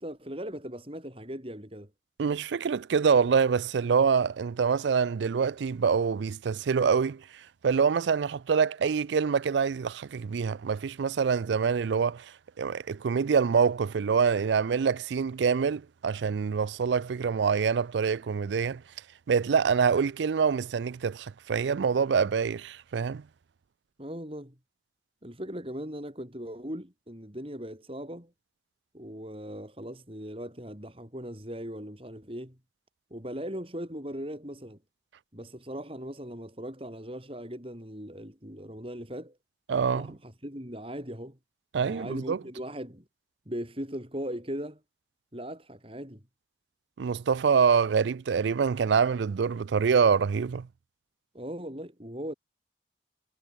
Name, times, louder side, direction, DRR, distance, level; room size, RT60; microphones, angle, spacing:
voice 1, 0.0-1.9 24.0-24.6 25.2-28.3 28.9-32.6 33.1-34.8 35.3-39.4 39.9-41.4 41.8-43.0 43.5-44.8 45.3-46.2 51.3-52.3, equal, 30° right, 6.3 m, -39 dB
voice 2, 2.2-18.8 19.3-23.2 39.7-40.1 41.7-42.4 47.0-50.7, right 6 dB, 75° right, 0.4 m, -25 dB
head